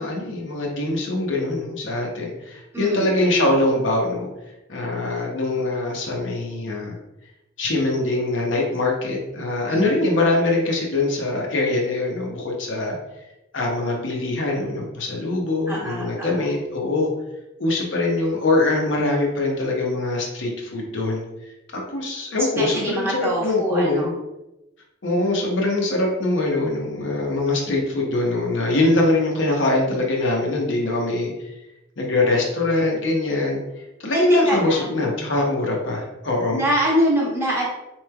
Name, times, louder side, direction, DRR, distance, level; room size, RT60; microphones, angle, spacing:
voice 1, 0.0-4.3 4.7-7.0 7.6-13.0 13.5-17.1 17.6-21.2 21.7-24.1 25.0-31.5 32.0-33.6 34.0-36.6, left 2 dB, 70° left, -1 dB, 0.8 m, -23 dB
voice 2, 2.7-3.5 9.7-10.1 15.7-16.5 22.6-24.2 29.8-30.0 34.1-35.1 36.5-37.6, right 1 dB, 15° right, -5 dB, 0.9 m, -25 dB
4.1 x 3.1 x 2.2 m, 0.94 s
head